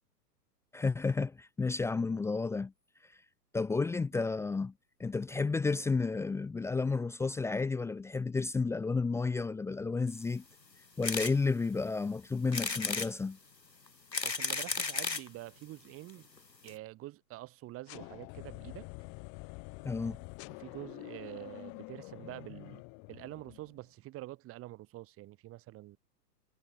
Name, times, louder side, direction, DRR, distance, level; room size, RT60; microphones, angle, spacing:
voice 1, 0.7-2.7 3.5-4.7 5.0-10.4 11.0-13.4 19.8-20.2, left 4 dB, 5° left, 1.0 m, -32 dB
sound 1, 11.0-11.3 11.8-11.9 12.5-13.1 13.9-15.3 16.1-16.2 16.4-16.5 16.7-16.8, left 4 dB, 85° left, 2.2 m, -34 dB
voice 2, 14.2-16.3 16.6-18.9 20.6-22.8 23.1-26.0, right 17 dB, 25° right, 6.7 m, -46 dB
sound 2, 17.9-23.8, left 35 dB, 30° left, 2.1 m, -47 dB
figure-of-eight pair, 110°, 49 cm